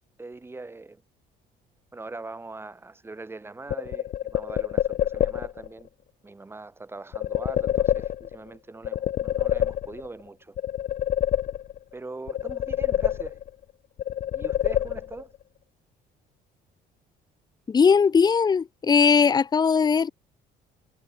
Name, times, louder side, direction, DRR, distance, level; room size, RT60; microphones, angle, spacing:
voice 1, 0.2-1.0 1.9-5.9 6.2-10.6 11.9-13.4 14.3-15.4, right 3 dB, 15° right, 4.2 m, -41 dB
sound 1, 3.7-5.7 7.1-8.5 8.8-10.2 10.6-11.9 12.3-13.6 14.0-15.4, left 11 dB, 50° left, 2.1 m, -27 dB
voice 2, 17.7-20.1, left 6 dB, 25° left, 0.8 m, -19 dB
cardioid pair, 150°, 17 cm